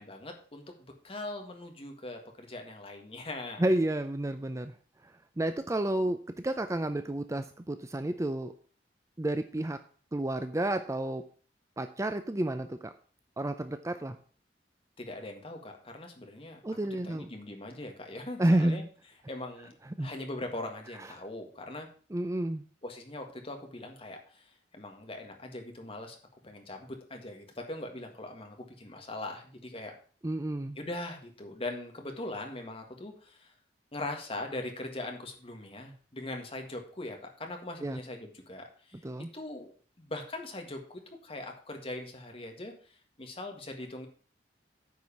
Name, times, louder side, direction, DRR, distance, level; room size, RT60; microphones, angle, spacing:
voice 1, 0.0-3.6 15.0-16.6 17.0-18.8 19.3-19.7 20.0-21.9 22.8-26.2 26.4-29.9 30.7-33.5 33.9-39.7 40.0-40.8 41.2-42.7 43.2-44.1, left 2 dB, 30° left, 3 dB, 1.8 m, -41 dB
voice 2, 3.6-4.7 5.4-8.5 9.2-9.8 10.1-11.2 11.8-12.9 13.4-14.2 16.6-17.3 18.4-18.9 20.0-20.1 22.1-22.6 30.2-30.8 37.8-38.0 39.0-39.3, right 1 dB, 15° right, 9 dB, 0.5 m, -30 dB
9.4 x 4.9 x 7.0 m, 0.42 s
head